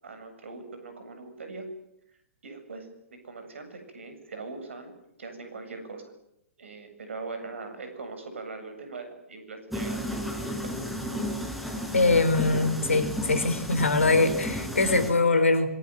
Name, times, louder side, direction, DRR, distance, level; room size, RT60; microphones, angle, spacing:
voice 1, 0.0-1.7 2.4-4.9 5.2-6.1 6.6-10.8, right 3 dB, 65° right, 8 dB, 7.8 m, -41 dB
sound 1, 9.7-15.1, equal, ahead, 6.8 m, -33 dB
voice 2, 11.9-15.7, left 3 dB, 75° left, 11 dB, 4.5 m, -22 dB
26.0 x 23.5 x 9.3 m, 0.82 s
figure-of-eight pair, 115°, 7 cm